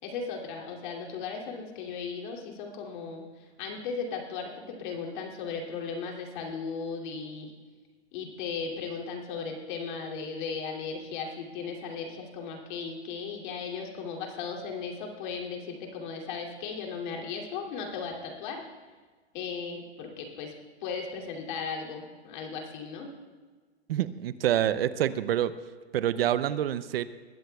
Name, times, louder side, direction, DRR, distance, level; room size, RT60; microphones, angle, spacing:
voice 1, 0.0-7.5 8.1-18.7 19.3-20.5 20.8-23.1, left 5 dB, 45° left, 0 dB, 2.8 m, -36 dB
voice 2, 23.9-25.5 25.9-27.1, right 11 dB, 60° right, 15 dB, 0.6 m, -27 dB
21.0 x 16.0 x 2.3 m, 1.4 s
hypercardioid pair, 145°, 33 cm